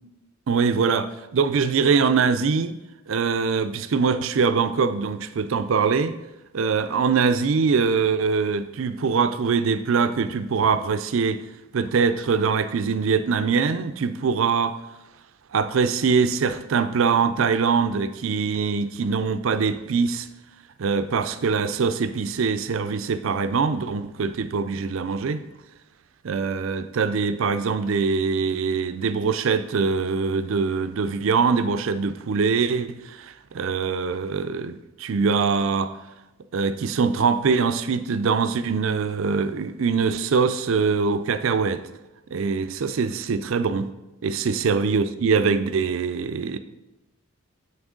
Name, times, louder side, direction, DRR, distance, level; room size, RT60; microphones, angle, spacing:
voice 1, 0.5-2.7 3.1-6.2 6.5-11.4 11.7-14.8 15.5-20.3 20.8-25.4 26.2-35.9 36.5-41.8 42.3-43.9 44.2-46.6, right 5 dB, 70° right, 0.4 m, -23 dB
7.2 x 6.2 x 3.7 m
head